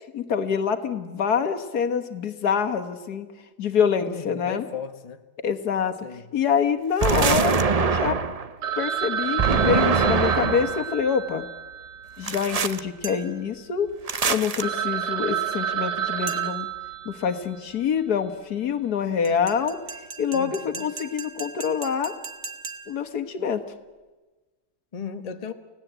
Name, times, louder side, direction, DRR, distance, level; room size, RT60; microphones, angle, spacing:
voice 1, 0.0-3.3 3.6-4.7 5.4-6.0 6.3-8.2 8.8-11.5 12.2-13.9 14.3-16.7 17.1-19.8 20.2-22.1 22.9-23.6, left 7 dB, 75° left, 7 dB, 1.8 m, -26 dB
voice 2, 4.0-5.2 6.0-6.3 20.3-20.9 24.9-25.5, left 6 dB, 30° left, 8 dB, 1.0 m, -36 dB
sound 1, 7.0-8.5 9.4-10.8 12.3-12.8 14.1-14.6, right 5 dB, 40° right, 0.5 m, -23 dB
Telephone, 8.6-13.0 13.2-13.3 13.9-14.0 14.3-14.4 14.6-17.6, right 9 dB, 75° right, 1.7 m, -29 dB
sound 2, 13.0-13.5 16.3-16.8 19.2-23.1, right 4 dB, 55° right, 1.9 m, -39 dB
29.5 x 17.0 x 8.1 m, 1.3 s
omnidirectional pair, 1.7 m